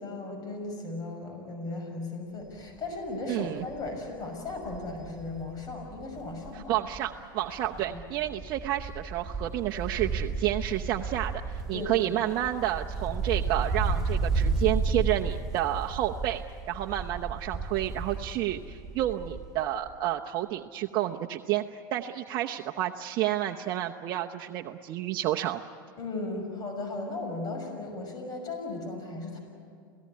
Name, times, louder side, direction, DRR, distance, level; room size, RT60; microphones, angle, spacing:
voice 1, 0.0-6.7 7.7-8.0 11.7-12.2 26.0-29.4, left 2 dB, 35° left, 3 dB, 6.3 m, -36 dB
Wind, 2.6-2.8 3.2-3.3 3.6-7.1 7.4-19.6 19.9-20.0, right 4 dB, 5° right, 4.0 m, -33 dB
voice 2, 3.3-3.6 6.5-25.6, right 13 dB, 50° right, 1 dB, 0.9 m, -30 dB
28.5 x 17.5 x 9.7 m, 2.3 s
hypercardioid pair, 95°, 11 cm